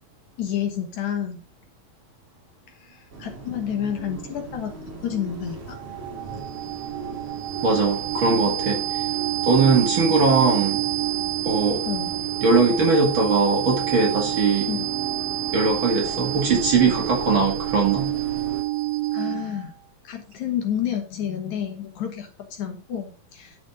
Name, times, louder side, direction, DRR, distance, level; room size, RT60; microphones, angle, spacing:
voice 1, 0.4-1.4 2.7-4.7 5.0-5.8 11.9-12.2 14.7-14.9 19.1-19.7 20.0-23.6, left 9 dB, 65° left, 2.3 m, -30 dB
sound 1, 3.1-18.6, right 4 dB, 55° right, 3.9 m, -37 dB
sound 2, 5.7-19.6, right 14 dB, 90° right, 2.5 m, -28 dB
voice 2, 7.6-9.1 9.4-10.9 11.4-11.9 12.4-14.7 15.5-18.2, right 4 dB, 40° right, 2.3 m, -20 dB
11.5 x 5.2 x 4.9 m
omnidirectional pair, 4.1 m